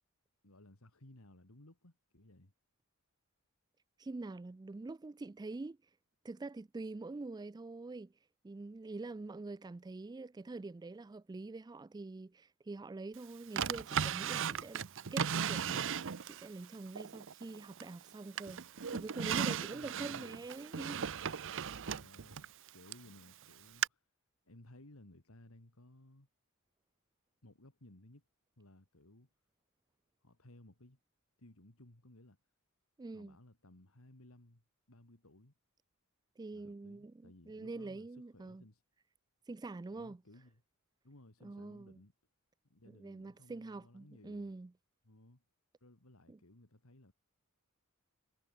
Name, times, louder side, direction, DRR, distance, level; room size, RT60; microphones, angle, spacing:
voice 1, 0.4-2.5 19.7-20.4 21.8-24.1 24.4-26.3 27.4-28.2 28.6-29.3 30.2-31.0 31.4-32.4 33.1-35.5 36.5-38.8 39.9-40.6 41.0-42.1 42.7-44.5 45.0-45.4 45.8-47.1, left 1 dB, 70° left, 2.8 m, -59 dB
voice 2, 4.0-5.8 6.2-8.1 8.4-14.8 15.1-18.6 18.9-21.4 33.0-33.4 36.4-38.6 39.5-40.2 41.4-42.0 43.0-44.7 46.3-46.4, right 3 dB, 20° right, 0.3 m, -45 dB
Drawer open or close, 13.6-16.5 17.0-18.0 18.4-23.1 23.8-23.9, right 7 dB, 60° right, 0.7 m, -36 dB
head